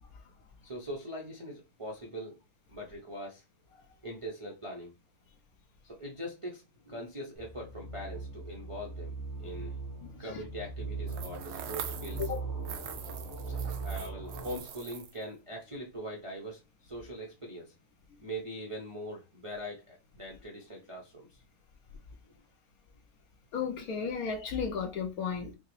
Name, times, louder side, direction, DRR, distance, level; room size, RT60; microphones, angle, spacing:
voice 1, 0.6-2.4 2.7-3.4 4.0-4.9 5.8-9.8 10.2-12.2 13.5-13.6 13.8-17.7 18.2-21.4 22.2-22.4, equal, 45° right, 0.4 m, -42 dB
sound 1, 7.4-14.6, right 3 dB, 85° left, 2.0 m, -39 dB
sound 2, 11.1-12.4 12.7-15.2, right 9 dB, 70° right, 1.0 m, -43 dB
voice 2, 23.5-25.5, left 6 dB, 70° left, 1.0 m, -34 dB
5.7 x 2.0 x 3.1 m
omnidirectional pair, 1.9 m